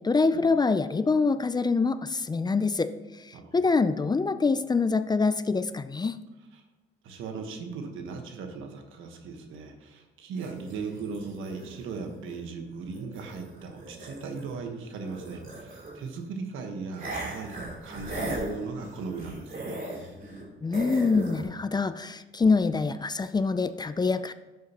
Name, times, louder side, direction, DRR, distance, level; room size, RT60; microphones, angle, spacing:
voice 1, 0.0-6.2 20.6-24.3, left 4 dB, 20° left, 12 dB, 0.4 m, -25 dB
voice 2, 7.0-19.8, right 4 dB, 85° right, 5 dB, 1.3 m, -38 dB
sound 1, 10.4-14.6 14.9-16.2 17.0-20.4 20.7-21.4, right 1 dB, 45° right, 3.0 m, -38 dB
11.0 x 7.5 x 3.0 m, 1.2 s
cardioid pair, 90°, 20 cm